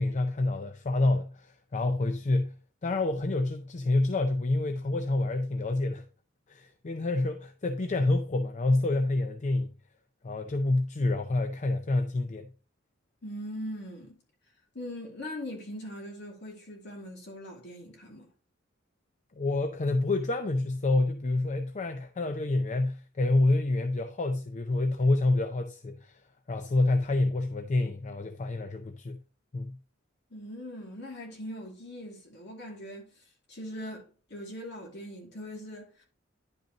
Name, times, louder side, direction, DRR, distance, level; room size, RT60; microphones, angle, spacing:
voice 1, 0.0-2.5 2.8-6.0 6.5-9.7 10.2-12.5 19.4-26.2 26.5-29.2 29.5-29.8, left 2 dB, 35° left, 0.5 m, -28 dB
voice 2, 13.2-14.2 14.7-18.3 30.3-36.0, equal, 60° left, 2.5 m, -41 dB
10.5 x 5.3 x 2.9 m
head